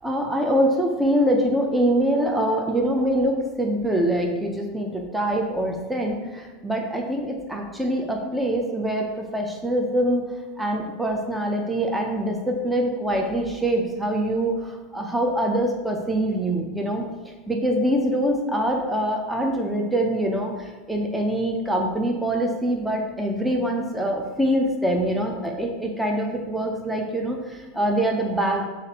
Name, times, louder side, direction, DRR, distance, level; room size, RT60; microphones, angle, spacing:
voice 1, 0.0-10.2 10.6-17.1 17.5-28.6, right 1 dB, 5° right, 1 dB, 0.6 m, -24 dB
6.3 x 2.5 x 2.9 m, 1.3 s
hypercardioid pair, 95°, 0 cm